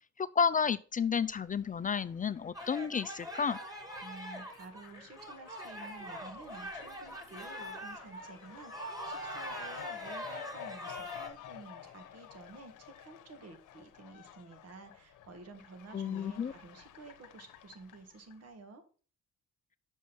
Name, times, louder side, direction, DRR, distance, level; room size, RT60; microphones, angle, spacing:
voice 1, 0.2-3.6 15.9-16.5, left 6 dB, 30° left, 0.4 m, -31 dB
Fowl, 1.2-18.5, left 11 dB, 80° left, 0.9 m, -52 dB
sound 1, 2.5-11.3, equal, 10° right, 1.9 m, -43 dB
voice 2, 4.0-18.8, right 3 dB, 55° right, 1.8 m, -51 dB
6.3 x 5.4 x 5.9 m
cardioid pair, 90°, 30 cm